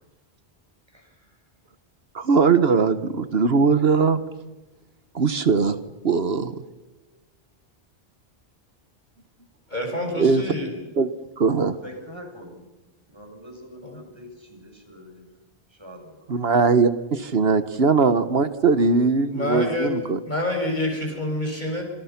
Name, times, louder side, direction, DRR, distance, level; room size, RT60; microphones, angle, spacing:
voice 1, 0.9-1.3 7.1-7.2 11.8-12.6 13.1-15.3 15.7-16.2, equal, 25° right, 1 dB, 7.4 m, -44 dB
voice 2, 2.1-4.2 5.1-5.8 6.0-6.6 10.1-10.4 11.0-11.1 11.4-11.8 16.3-20.2, right 4 dB, 75° right, 11 dB, 1.4 m, -20 dB
voice 3, 9.7-10.7 13.8-14.0 19.3-19.9 20.2-21.8, left 1 dB, 45° left, 2 dB, 6.4 m, -27 dB
29.5 x 27.5 x 5.9 m, 1.0 s
omnidirectional pair, 1.0 m